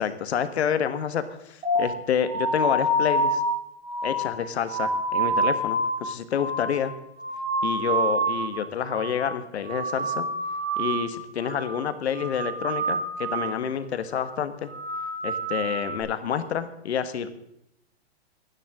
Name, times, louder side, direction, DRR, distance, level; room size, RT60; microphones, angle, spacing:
voice 1, 0.0-3.4 4.0-6.9 7.6-10.3 10.8-14.7 15.2-17.3, left 8 dB, 75° left, 11 dB, 1.5 m, -28 dB
sound 1, 1.6-8.6 8.9-9.4 9.6-11.1 11.4-11.8 12.1-13.6 13.9-14.3 14.6-16.0, right 1 dB, 80° right, 4.9 m, -28 dB
23.5 x 9.9 x 3.7 m, 0.80 s
hypercardioid pair, 155°, 33 cm